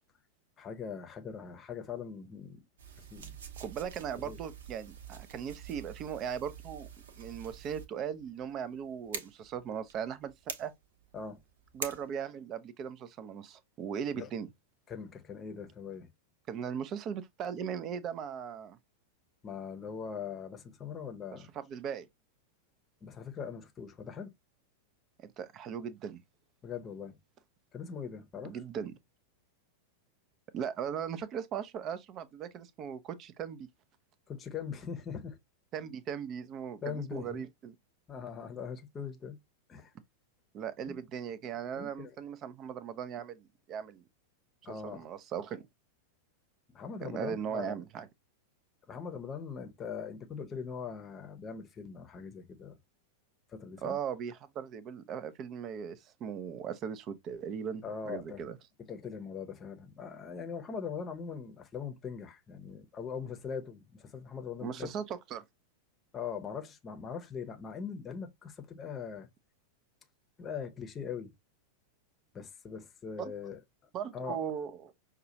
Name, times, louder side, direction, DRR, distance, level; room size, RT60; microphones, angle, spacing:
voice 1, 0.6-2.6 3.0-3.4 4.2-4.4 11.1-11.4 14.1-14.3 14.9-16.1 19.4-21.5 23.0-24.3 26.6-27.2 27.7-28.6 34.3-35.4 36.8-37.4 38.1-39.4 39.7-39.9 40.9-41.0 41.7-42.1 44.6-45.1 46.7-47.7 48.9-52.8 53.5-54.0 57.8-58.4 58.9-64.9 66.1-69.3 70.4-71.3 72.3-73.6 74.1-74.4, left 6 dB, 25° left, 0.8 m, -41 dB
sound 1, 2.8-12.1, right 6 dB, 60° right, 0.8 m, -46 dB
voice 2, 3.6-6.9 7.2-10.7 11.7-14.5 16.5-18.8 21.3-22.1 25.2-26.2 28.4-28.9 30.5-33.7 35.7-37.8 40.5-44.0 44.7-45.7 47.0-48.1 53.8-58.6 64.6-65.4 73.2-73.3 73.9-74.9, right 8 dB, 35° right, 0.5 m, -38 dB
5.6 x 2.3 x 2.7 m
figure-of-eight pair, 90°, 0 cm